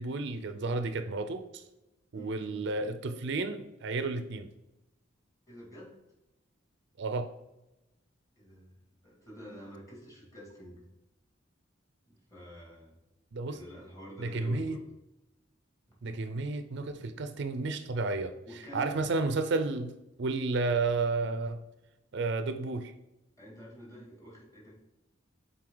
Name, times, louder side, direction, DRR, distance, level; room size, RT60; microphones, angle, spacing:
voice 1, 0.0-1.6 2.1-4.5 7.0-7.3 13.3-13.6 14.2-14.8 16.0-18.4 18.7-21.6 22.1-22.9, right 3 dB, 60° right, 9 dB, 0.5 m, -32 dB
voice 2, 2.1-2.7 5.5-6.0 8.4-10.9 12.1-12.9 13.5-14.8 15.9-16.0 17.0-17.1 18.5-19.0 23.4-24.7, equal, 15° left, -4 dB, 2.4 m, -48 dB
7.5 x 4.1 x 3.8 m, 0.96 s
head